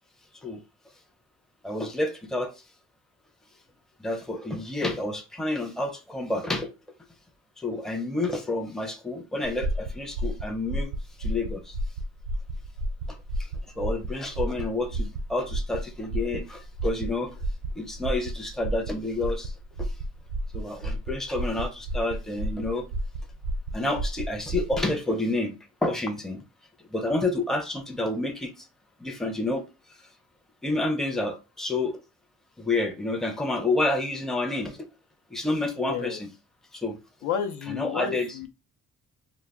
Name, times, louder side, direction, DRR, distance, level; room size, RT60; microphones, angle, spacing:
voice 1, 1.6-2.5 4.0-6.7 7.6-10.9 11.2-11.8 13.1-13.5 13.8-17.4 17.8-19.5 19.8-19.9 20.5-22.9 23.7-26.4 26.9-28.7 29.0-29.6 30.6-32.0 32.6-34.9 35.3-36.3 36.7-37.0 37.7-38.4, left 2 dB, ahead, 0.5 m, -29 dB
sound 1, 9.4-24.9, right 1 dB, 85° right, 0.5 m, -32 dB
voice 2, 35.8-36.2 37.2-38.5, left 8 dB, 75° left, 0.5 m, -31 dB
2.2 x 2.0 x 3.4 m
cardioid pair, 90°, 30 cm